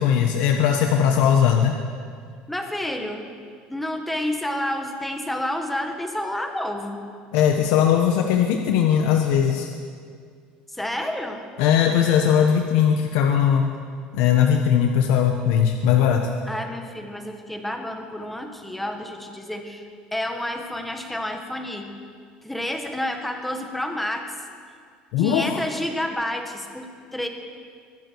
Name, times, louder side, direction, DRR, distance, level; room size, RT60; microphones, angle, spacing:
voice 1, 0.0-1.8 7.3-9.7 11.6-13.7 14.1-16.3 25.1-25.6, left 8 dB, 85° left, 3 dB, 1.1 m, -19 dB
voice 2, 2.5-3.3 3.7-7.0 10.7-11.5 16.5-21.9 22.4-24.3 25.2-27.3, left 1 dB, 5° left, 4 dB, 1.5 m, -29 dB
23.5 x 12.0 x 4.7 m, 2.1 s
cardioid pair, 145°, 3 cm